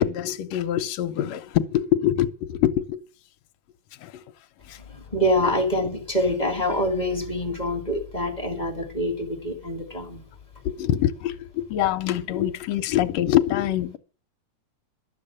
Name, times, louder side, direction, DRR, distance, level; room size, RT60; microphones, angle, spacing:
voice 1, 0.0-3.0 4.0-4.3 4.7-4.8 5.4-5.5 10.7-14.0, left 12 dB, 75° left, 1.8 m, -24 dB
voice 2, 4.9-10.2, left 1 dB, 15° left, 1.7 m, -25 dB
12.0 x 6.5 x 8.6 m
omnidirectional pair, 3.4 m